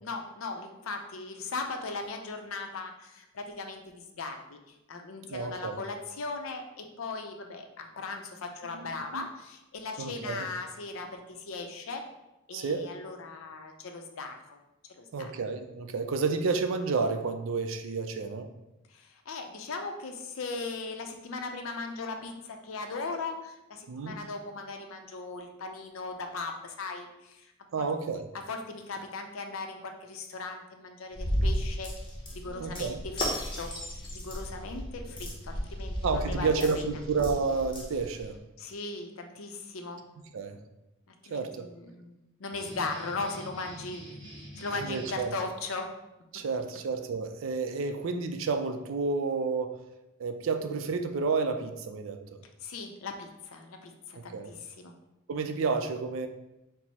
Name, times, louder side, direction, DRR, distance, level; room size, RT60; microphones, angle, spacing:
voice 1, 0.0-12.0 12.5-14.6 14.9-15.3 18.9-27.9 28.5-31.9 32.3-33.7 34.1-36.9 38.6-40.0 41.3-44.1 44.6-45.9 52.6-54.9, left 3 dB, 85° left, 5 dB, 0.5 m, -38 dB
voice 2, 5.3-5.8 8.6-9.3 10.0-10.5 12.5-12.9 15.1-18.5 23.9-24.2 27.7-28.2 32.5-33.0 36.0-38.4 40.3-40.6 41.3-41.7 44.7-45.3 46.3-49.8 50.2-52.2 54.3-54.5 55.3-56.3, right 4 dB, 75° right, 7 dB, 0.4 m, -30 dB
sound 1, 31.1-38.3, equal, 25° left, 0.7 m, -34 dB
sound 2, 42.5-45.3, equal, 20° right, 1.0 m, -46 dB
4.4 x 2.0 x 4.1 m, 0.94 s
head